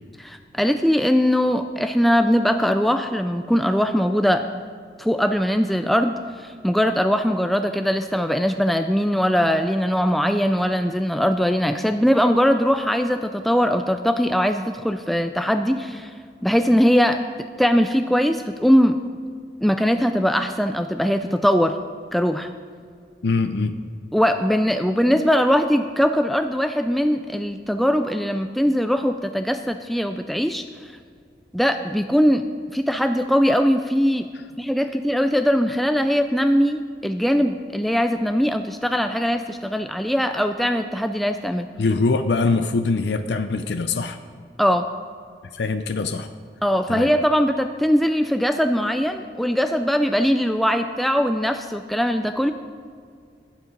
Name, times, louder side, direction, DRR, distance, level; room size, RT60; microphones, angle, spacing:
voice 1, 0.2-4.5 5.0-16.1 16.4-17.2 17.6-19.0 19.6-21.8 22.1-22.5 24.1-30.9 31.5-32.5 32.7-34.3 34.6-41.7 44.6-44.9 46.6-52.5, equal, ahead, 7 dB, 0.3 m, -21 dB
voice 2, 23.2-23.8 41.8-44.2 45.5-46.3 46.9-47.1, left 3 dB, 70° left, 9 dB, 0.5 m, -23 dB
12.5 x 11.5 x 5.2 m, 2.1 s
head